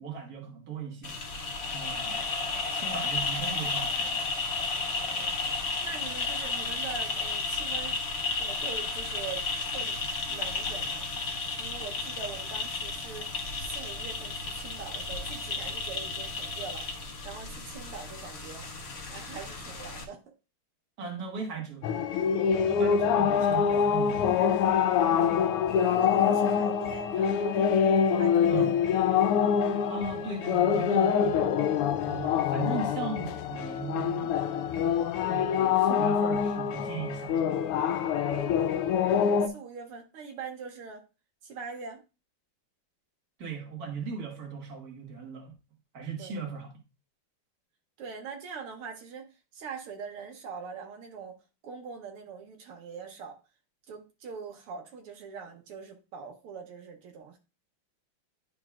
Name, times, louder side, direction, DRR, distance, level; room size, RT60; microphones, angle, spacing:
voice 1, 0.0-1.4 1.7-2.3 2.7-4.3 21.0-21.9 22.6-24.5 28.5-28.8 29.9-31.6 32.1-34.4 35.3-37.6 43.4-45.5 45.9-46.7, right 5 dB, 45° right, 1.9 m, -38 dB
sound 1, 1.0-20.0, left 3 dB, 45° left, 0.9 m, -33 dB
voice 2, 5.0-7.9 8.4-9.5 9.7-10.0 10.3-11.1 11.6-13.3 13.6-18.7 19.1-20.3 25.0-27.7 28.2-28.8 38.8-41.0 41.4-42.0 46.2-46.4 48.0-51.4 51.6-53.4 53.9-57.4, right 6 dB, 80° right, 1.9 m, -43 dB
sound 2, 21.8-39.5, left 7 dB, 85° left, 1.6 m, -25 dB
10.5 x 4.5 x 2.4 m
omnidirectional pair, 2.4 m